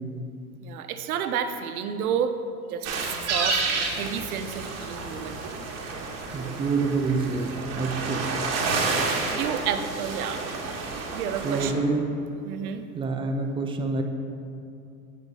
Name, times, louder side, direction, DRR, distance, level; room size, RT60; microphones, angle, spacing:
voice 1, 0.6-2.3 2.7-3.6 3.9-5.4 8.9-10.6 11.1-11.7 12.4-12.8, right 8 dB, 75° right, 9 dB, 0.7 m, -31 dB
sound 1, 2.8-11.7, right 4 dB, 35° right, 1.2 m, -30 dB
voice 2, 6.3-7.5 7.8-8.4 11.4-12.0 12.9-14.0, right 4 dB, 10° right, 4 dB, 0.4 m, -27 dB
8.8 x 5.1 x 4.0 m, 2.6 s
hypercardioid pair, 100°, 44 cm